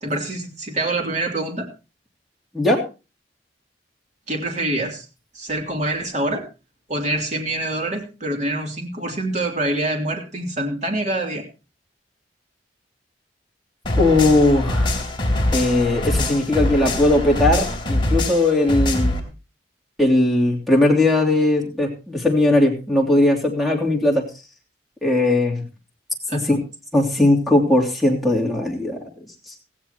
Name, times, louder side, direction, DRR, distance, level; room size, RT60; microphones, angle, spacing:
voice 1, 0.0-1.7 4.3-5.0 5.3-6.4 6.9-11.4 26.3-26.6, right 1 dB, 40° right, 2 dB, 3.1 m, -25 dB
sound 1, 13.9-19.2, left 1 dB, 30° left, 3.2 m, -23 dB
voice 2, 14.0-14.9 15.5-19.2 20.0-24.3 25.0-25.6 26.3-26.6 26.9-29.0, left 2 dB, ahead, -1 dB, 3.1 m, -18 dB
17.0 x 15.5 x 3.0 m, 0.31 s
head